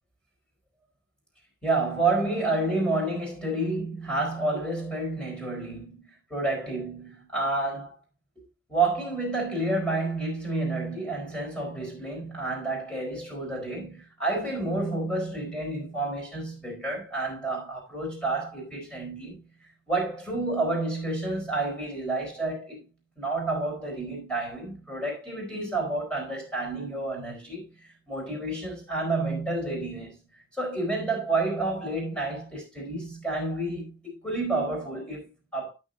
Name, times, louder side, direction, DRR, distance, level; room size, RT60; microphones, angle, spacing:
voice 1, 1.6-7.9 8.4-19.4 19.9-22.8 23.2-30.2 30.6-35.7, right 2 dB, 5° left, 4.4 m, -30 dB
13.0 x 6.3 x 2.6 m
head